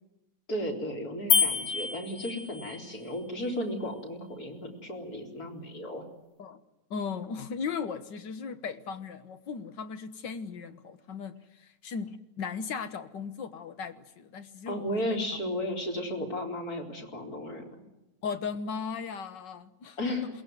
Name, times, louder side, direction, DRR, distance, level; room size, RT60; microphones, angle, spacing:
voice 1, 0.5-6.1 14.7-17.8 20.0-20.3, left 1 dB, 60° left, 1 dB, 4.6 m, -34 dB
sound 1, 1.3-2.8, left 6 dB, 40° left, 1.9 m, -27 dB
voice 2, 6.9-15.2 18.2-20.0, left 5 dB, 85° left, 11 dB, 2.0 m, -37 dB
22.0 x 19.0 x 9.3 m, 0.99 s
omnidirectional pair, 1.9 m